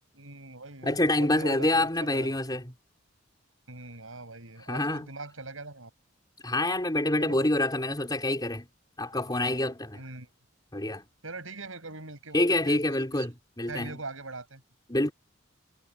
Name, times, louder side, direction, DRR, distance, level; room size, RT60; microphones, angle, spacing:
voice 1, 0.1-2.4 3.7-5.9 7.2-7.4 9.9-10.3 11.2-12.8 13.1-13.3 13.7-14.6, right 3 dB, 80° right, 6.6 m, -42 dB
voice 2, 0.8-2.7 4.7-5.1 6.4-8.7 9.0-10.0 10.7-11.0 12.3-14.0 14.9-15.1, left 1 dB, 20° left, 4.2 m, -27 dB
head